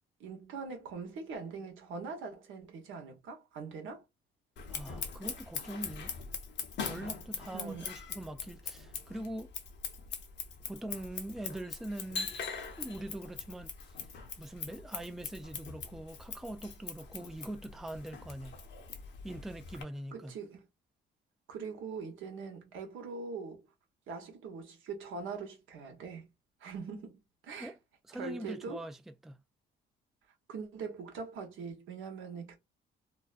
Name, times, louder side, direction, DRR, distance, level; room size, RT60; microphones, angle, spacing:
voice 1, 0.2-4.0 7.5-7.8 20.1-20.7 21.5-23.7 24.1-26.3 26.6-27.7 28.1-28.8 30.5-32.6, right 5 dB, 85° right, 1.0 m, -42 dB
Scissors, 4.6-19.8, left 5 dB, 65° left, 0.7 m, -42 dB
voice 2, 4.7-6.1 6.8-9.5 10.6-12.4 12.8-14.0 14.4-18.6 19.2-20.3 27.6-27.8 28.1-29.0 29.2-29.4, right 1 dB, ahead, 0.3 m, -43 dB
2.5 x 2.2 x 2.4 m
cardioid pair, 90°, 20 cm